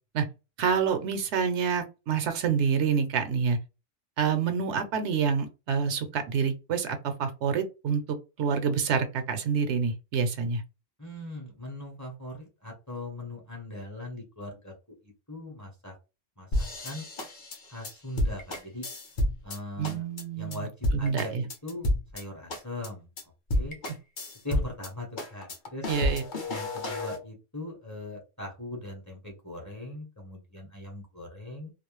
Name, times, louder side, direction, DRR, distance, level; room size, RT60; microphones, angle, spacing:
voice 1, 0.6-3.6 4.2-10.6 19.8-20.7 20.9-21.4 25.9-26.4, right 6 dB, 70° right, 0.8 m, -27 dB
voice 2, 11.0-15.9 16.4-17.1 17.7-18.8 19.4-20.0 20.4-21.9 22.1-23.1 23.5-23.8 24.4-25.9 26.5-31.7, left 1 dB, 20° left, 0.7 m, -40 dB
sound 1, 16.5-19.6 19.8-20.2 20.5-20.6 20.8-22.2 22.5-22.9 23.2-23.3 23.5-24.9 25.2-27.2, left 1 dB, 50° left, 0.8 m, -30 dB
2.4 x 2.0 x 3.0 m
omnidirectional pair, 1.2 m